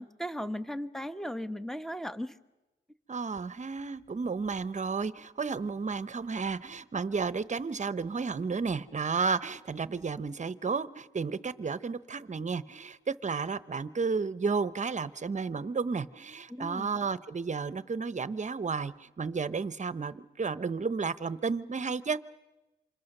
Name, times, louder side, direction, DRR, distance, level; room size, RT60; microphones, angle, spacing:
voice 1, 0.0-2.4 16.5-16.9, equal, ahead, 12 dB, 1.0 m, -36 dB
voice 2, 3.1-22.2, right 5 dB, 35° right, 15 dB, 0.9 m, -32 dB
27.5 x 26.5 x 6.7 m, 1.1 s
wide cardioid pair, 110°, 20 cm